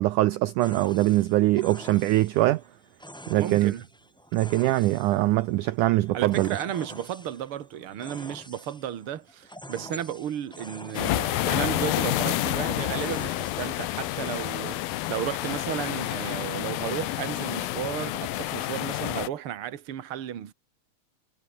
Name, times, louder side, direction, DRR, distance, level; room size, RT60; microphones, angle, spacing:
voice 1, 0.0-2.6 3.3-3.7 4.3-6.6, right 17 dB, 90° right, 1.8 m, -22 dB
sound 1, 0.6-14.2, equal, ahead, 2.8 m, -47 dB
voice 2, 3.4-3.8 6.1-20.5, right 10 dB, 45° right, 1.9 m, -33 dB
sound 2, 10.9-19.3, left 16 dB, 75° left, 2.7 m, -29 dB
omnidirectional pair, 4.4 m